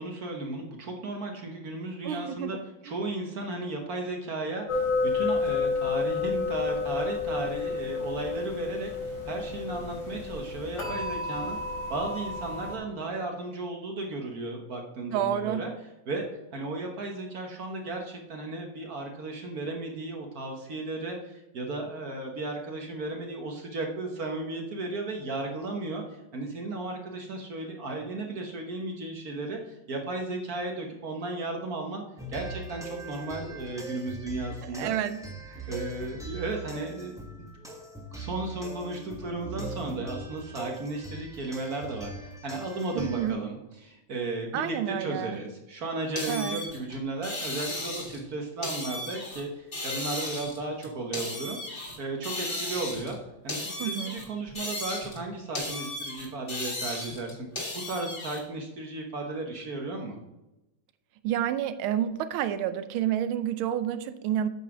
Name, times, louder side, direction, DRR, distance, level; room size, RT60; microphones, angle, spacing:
voice 1, 0.0-2.6 2.8-11.6 11.9-15.7 16.1-16.3 16.5-32.0 32.3-34.9 35.7-37.1 37.4-37.8 38.1-51.6 52.0-53.2 53.4-57.5 57.8-60.2, right 2 dB, 50° right, 2 dB, 1.4 m, -35 dB
voice 2, 2.0-2.6 15.1-15.6 34.6-35.2 35.6-35.7 42.9-43.4 44.5-45.4 46.3-46.6 53.8-54.2 61.2-64.5, right 10 dB, 90° right, 12 dB, 1.5 m, -29 dB
sound 1, 4.7-12.8, left 4 dB, 55° left, 4.2 m, -30 dB
sound 2, 32.2-43.3, right 2 dB, ahead, 1.0 m, -41 dB
sound 3, 46.2-48.2 48.6-49.4 49.7-52.0 52.2-53.2 53.5-55.2 55.5-58.4, left 2 dB, 25° left, 2.0 m, -35 dB
8.5 x 5.6 x 6.0 m, 0.97 s
omnidirectional pair, 2.2 m